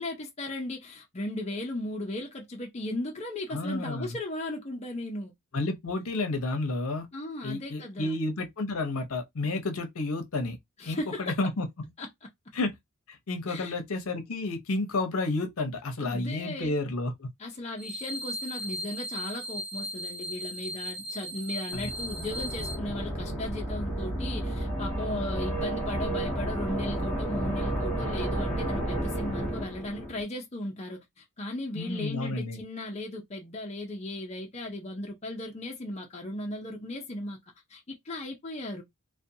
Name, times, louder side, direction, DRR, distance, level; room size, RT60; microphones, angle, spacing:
voice 1, 0.0-5.3 7.1-8.2 10.8-11.4 12.0-12.1 13.5-13.7 16.0-16.8 17.4-37.4 37.7-38.8, left 1 dB, 30° left, 0.5 m, -36 dB
voice 2, 3.5-4.2 5.5-7.1 7.4-10.6 10.9-11.7 12.5-12.7 13.1-17.3 21.7-21.9 31.7-32.6, left 2 dB, 70° left, 0.7 m, -31 dB
sound 1, 17.8-22.8, equal, 45° right, 0.9 m, -37 dB
sound 2, 21.7-30.2, right 1 dB, ahead, 0.8 m, -32 dB
2.4 x 2.2 x 2.7 m
head